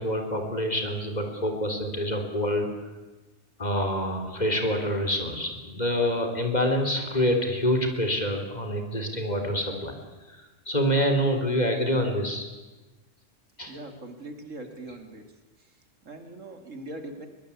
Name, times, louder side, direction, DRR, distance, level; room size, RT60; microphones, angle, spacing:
voice 1, 0.0-2.7 3.6-10.0 10.3-12.5 13.6-13.8, equal, 35° left, 4 dB, 3.8 m, -26 dB
voice 2, 13.6-15.2 16.0-17.3, right 2 dB, 85° right, 6 dB, 3.1 m, -41 dB
22.5 x 21.0 x 8.5 m, 1.2 s
omnidirectional pair, 1.3 m